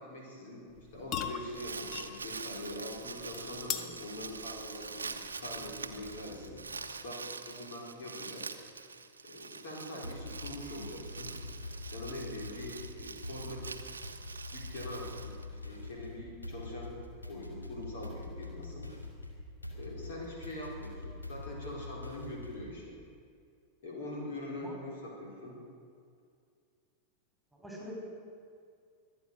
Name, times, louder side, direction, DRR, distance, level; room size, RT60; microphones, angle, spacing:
voice 1, 0.0-6.6 7.0-7.1 7.5-8.4 9.2-11.3 11.9-13.7 14.5-16.9 17.3-18.9 19.7-23.0 23.8-25.6, left 1 dB, 55° left, -2 dB, 4.2 m, -43 dB
sound 1, 0.7-7.1, left 8 dB, 40° left, 1.0 m, -43 dB
Crumpling crinkling, 1.4-15.9, right 4 dB, 75° right, 0.8 m, -45 dB
sound 2, 10.0-22.7, left 2 dB, 85° left, 2.4 m, -44 dB
voice 2, 27.5-27.9, equal, ahead, -2 dB, 4.4 m, -45 dB
24.0 x 8.9 x 6.6 m, 2.3 s
figure-of-eight pair, 90°, 0 cm